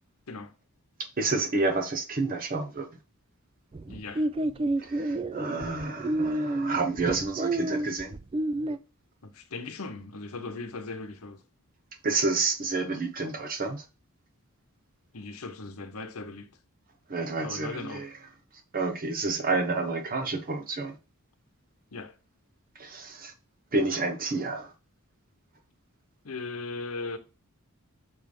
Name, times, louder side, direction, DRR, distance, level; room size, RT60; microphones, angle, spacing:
voice 1, 1.2-2.9 4.8-8.1 12.0-13.8 17.1-18.1 18.7-20.9 22.8-23.3 23.7-24.7, right 3 dB, 40° right, 0.9 m, -29 dB
sound 1, 3.7-8.8, right 2 dB, 25° right, 0.3 m, -29 dB
voice 2, 3.9-4.3 9.2-11.4 15.1-16.5 17.4-18.1 21.9-22.1 26.2-27.2, left 3 dB, 70° left, 0.9 m, -38 dB
6.6 x 3.4 x 5.2 m
head